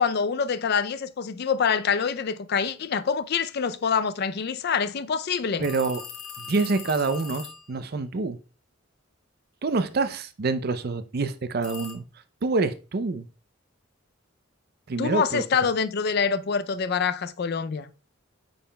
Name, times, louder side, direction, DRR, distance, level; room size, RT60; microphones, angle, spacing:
voice 1, 0.0-5.7 15.0-17.9, left 6 dB, 50° left, 0.4 m, -26 dB
sound 1, 5.6-7.7 11.6-11.9, left 6 dB, 80° left, 0.9 m, -40 dB
voice 2, 5.6-6.0 6.4-8.4 9.6-12.0 12.4-13.3 14.9-15.4, right 3 dB, 50° right, 0.5 m, -26 dB
8.5 x 5.5 x 2.2 m
head